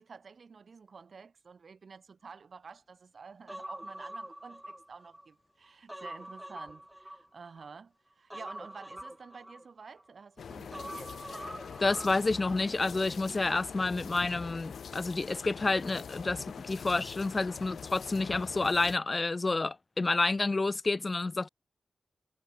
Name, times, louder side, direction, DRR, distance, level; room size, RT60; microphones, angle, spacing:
voice 1, 0.0-11.1, right 5 dB, 50° right, 5.6 m, -50 dB
Human voice, 3.5-5.3 5.6-7.7 8.3-10.1 10.7-12.6 12.9-13.1, right 1 dB, 5° right, 3.8 m, -45 dB
sound 1, 10.4-19.0, left 7 dB, 80° left, 4.0 m, -44 dB
voice 2, 11.8-21.5, left 3 dB, 25° left, 0.5 m, -29 dB
wide cardioid pair, 180°, 0 cm